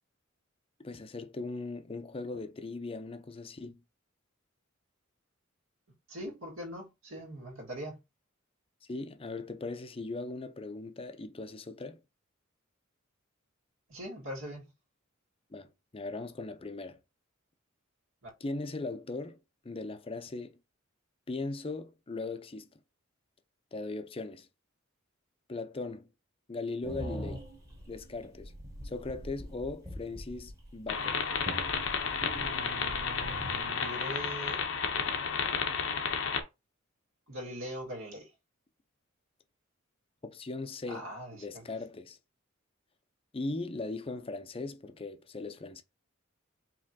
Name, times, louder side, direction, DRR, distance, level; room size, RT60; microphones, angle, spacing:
voice 1, 0.8-3.8 8.9-12.0 15.5-17.0 18.4-19.4 19.6-20.6 21.3-22.7 23.7-24.5 25.5-26.1 26.5-27.4 27.9-28.5 28.8-31.2 40.2-42.2 43.3-45.8, left 3 dB, 25° left, 0.5 m, -39 dB
voice 2, 6.1-8.0 13.9-14.7 18.2-18.3 32.3-34.6 37.3-38.3 40.9-41.4, right 1 dB, 75° right, 1.8 m, -41 dB
sound 1, 26.8-33.7, equal, 15° right, 1.1 m, -43 dB
sound 2, 30.9-36.4, left 6 dB, 70° left, 0.7 m, -32 dB
5.1 x 3.2 x 2.7 m
head